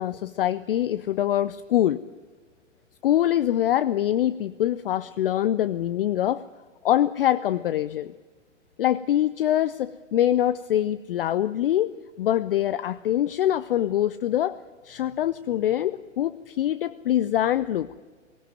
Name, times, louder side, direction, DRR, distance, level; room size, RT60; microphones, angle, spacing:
voice 1, 0.0-2.0 3.0-6.4 6.8-8.1 8.8-11.9 12.2-14.6 14.8-17.9, left 12 dB, 45° left, 15 dB, 0.6 m, -24 dB
19.0 x 17.0 x 9.2 m, 1.4 s
figure-of-eight pair, 115°, 38 cm